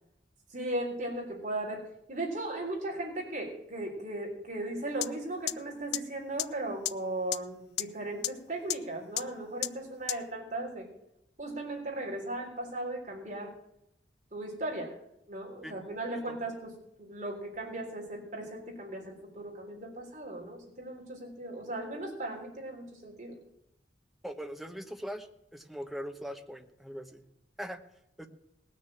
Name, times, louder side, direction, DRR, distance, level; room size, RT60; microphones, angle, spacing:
voice 1, 0.5-1.8 2.1-10.9 11.4-13.5 14.3-14.9 15.3-16.7 17.0-23.4, right 1 dB, 45° right, -1 dB, 3.6 m, -37 dB
sound 1, 5.0-5.1 5.5-5.6 5.9-6.0 6.4-6.5 6.8-6.9 7.3-7.4 7.8-7.9 8.2-8.3 8.7-8.8 9.2-9.3 9.6-9.7 10.1-10.2, left 14 dB, 60° left, 0.4 m, -29 dB
voice 2, 24.2-27.2 27.6-27.8 28.2-28.3, equal, ahead, 5 dB, 1.1 m, -41 dB
19.5 x 6.6 x 7.4 m, 0.80 s
head